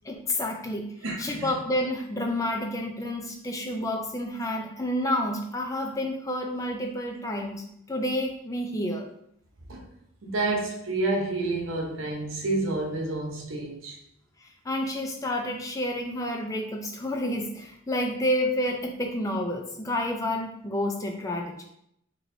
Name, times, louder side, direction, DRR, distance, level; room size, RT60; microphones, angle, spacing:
voice 1, 0.0-0.8 1.2-9.0 14.4-21.6, left 1 dB, 15° left, 0.4 m, -29 dB
voice 2, 1.0-1.5 9.7-9.9 10.2-14.0, right 2 dB, 80° right, 0.8 m, -29 dB
4.3 x 3.1 x 2.6 m
head